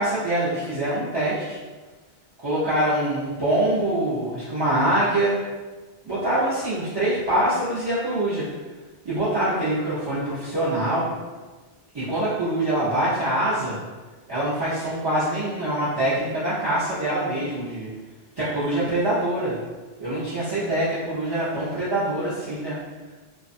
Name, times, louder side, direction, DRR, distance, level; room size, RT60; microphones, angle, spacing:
voice 1, 0.0-1.6 2.4-5.3 6.0-8.5 9.0-11.1 11.9-13.8 14.3-17.9 18.4-19.6 20.0-22.8, right 1 dB, 35° right, -11 dB, 0.4 m, -24 dB
2.5 x 2.2 x 2.5 m, 1.3 s
omnidirectional pair, 1.1 m